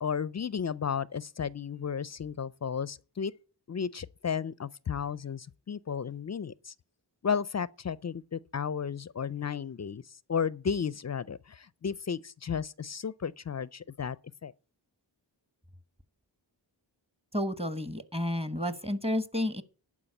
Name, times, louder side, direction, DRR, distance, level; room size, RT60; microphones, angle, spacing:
voice 1, 0.0-3.3 3.7-6.7 7.2-10.0 10.3-14.2 14.4-14.5, left 7 dB, 40° left, 0.4 m, -33 dB
voice 2, 17.3-19.6, left 1 dB, 15° right, 1.0 m, -31 dB
11.0 x 4.8 x 7.8 m
wide cardioid pair, 60°, 45 cm